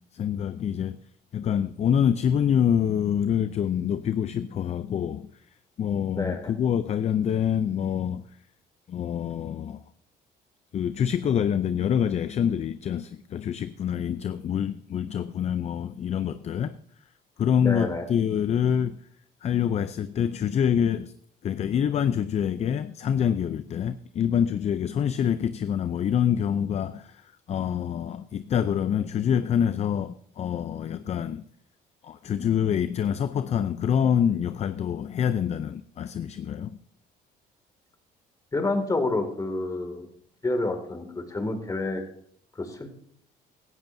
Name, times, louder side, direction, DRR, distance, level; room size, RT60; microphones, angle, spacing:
voice 1, 0.1-1.0 1.3-5.3 5.8-8.2 8.9-9.8 10.7-16.8 17.4-19.0 19.4-21.1 21.4-31.4 32.0-36.8, left 8 dB, 40° left, 0.5 m, -26 dB
voice 2, 6.1-6.5 17.6-18.0 38.5-40.1 40.4-42.0 42.6-42.9, left 2 dB, 20° left, 2.3 m, -28 dB
16.5 x 13.5 x 2.7 m
cardioid pair, 110°, 17 cm